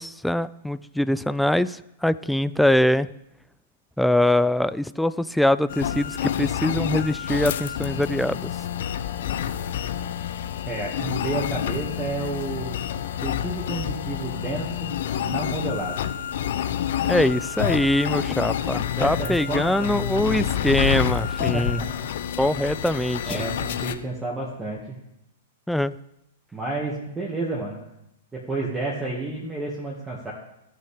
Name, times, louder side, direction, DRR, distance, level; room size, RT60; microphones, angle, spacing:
voice 1, 0.0-3.1 4.0-8.5 17.1-21.8 22.4-23.4 25.7-25.9, left 1 dB, ahead, 15 dB, 0.3 m, -23 dB
sound 1, 5.7-23.9, left 10 dB, 60° left, 0.7 m, -28 dB
voice 2, 10.7-12.8 13.2-16.0 19.0-19.9 21.5-21.9 23.3-25.0 26.5-27.9 28.3-30.3, right 3 dB, 15° right, -4 dB, 2.1 m, -31 dB
14.5 x 5.7 x 5.1 m, 0.84 s
figure-of-eight pair, 105°, 0 cm